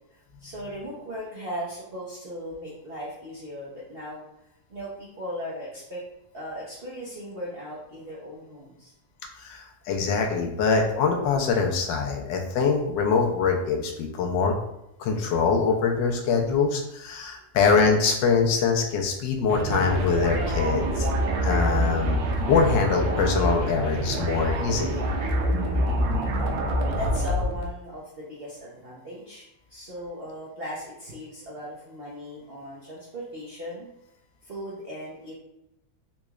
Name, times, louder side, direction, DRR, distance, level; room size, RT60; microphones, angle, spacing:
voice 1, 0.4-4.2 4.7-6.0 6.3-8.9 26.4-29.4 29.7-33.9 34.4-35.3, equal, 65° right, -7 dB, 0.6 m, -37 dB
voice 2, 9.4-14.5 15.0-21.1 21.4-25.0, left 5 dB, 85° left, 2 dB, 1.3 m, -24 dB
sound 1, 19.5-27.7, equal, 80° right, 1.3 m, -26 dB
3.9 x 3.1 x 2.3 m, 0.86 s
omnidirectional pair, 2.0 m